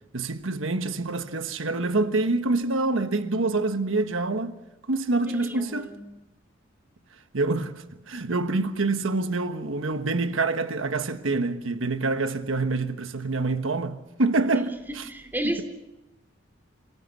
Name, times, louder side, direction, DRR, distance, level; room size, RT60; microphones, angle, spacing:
voice 1, 0.1-4.6 4.9-5.9 7.3-15.1 15.4-15.6, right 3 dB, 90° right, 1.3 m, -26 dB
voice 2, 5.3-6.0 15.1-15.6, right 1 dB, 10° right, 3.0 m, -32 dB
27.0 x 18.0 x 7.0 m
head